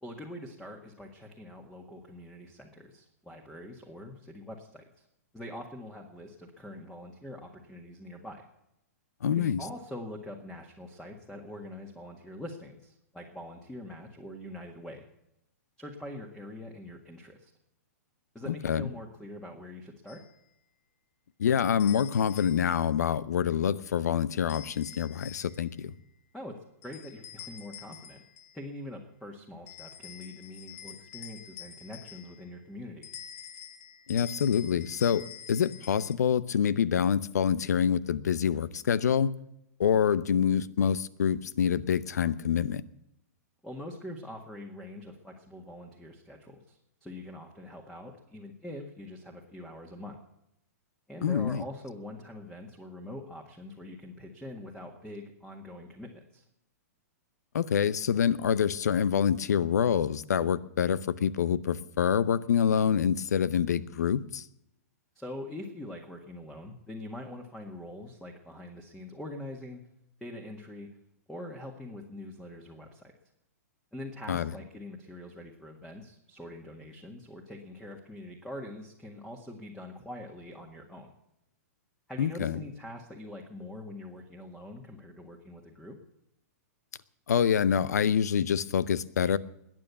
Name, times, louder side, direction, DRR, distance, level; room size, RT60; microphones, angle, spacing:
voice 1, 0.0-5.0 5.3-8.5 9.3-15.1 15.8-17.5 18.3-20.2 26.3-28.2 28.5-33.1 43.6-50.2 51.1-56.4 65.1-69.8 70.2-70.9 71.3-73.1 73.9-81.1 82.1-86.0, left 1 dB, 5° left, 1.8 m, -44 dB
voice 2, 9.2-9.6 18.5-18.9 21.4-25.9 34.1-39.3 39.8-42.8 51.2-51.6 57.5-64.4 74.3-74.5 82.2-82.6 87.3-89.4, left 8 dB, 80° left, 0.8 m, -26 dB
sound 1, 20.1-20.3 21.8-22.9 24.5-25.7 26.8-28.6 29.7-32.5 33.0-36.1, left 9 dB, 60° left, 1.7 m, -47 dB
21.0 x 9.0 x 7.1 m
hypercardioid pair, 125°, 9 cm